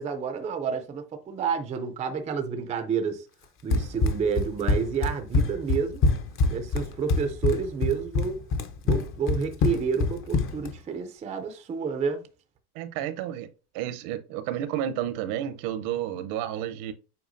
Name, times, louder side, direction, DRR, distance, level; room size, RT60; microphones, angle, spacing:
voice 1, 0.0-3.3 3.6-6.0 6.5-8.4 8.8-12.2, right 6 dB, 15° right, 0.4 m, -29 dB
Run, 3.7-10.7, left 3 dB, 30° left, 0.6 m, -25 dB
voice 2, 12.7-13.5 13.7-16.9, right 11 dB, 70° right, 0.9 m, -31 dB
7.9 x 4.7 x 2.6 m
cardioid pair, 165°, 46 cm